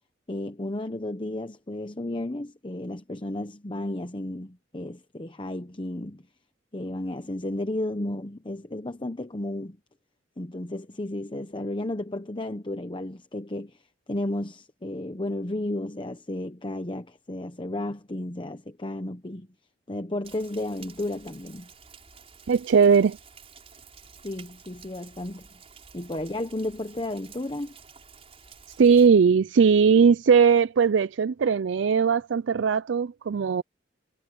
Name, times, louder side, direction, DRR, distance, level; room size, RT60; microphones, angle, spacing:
voice 1, 0.3-6.2 6.7-9.8 10.4-13.8 14.1-19.5 19.9-21.7 24.2-25.5 25.9-27.7, left 1 dB, 25° left, 0.9 m, -33 dB
Rain, 20.2-29.1, right 5 dB, 30° right, 5.7 m, -51 dB
voice 2, 22.5-23.2 28.7-33.6, right 6 dB, 75° right, 0.4 m, -19 dB
head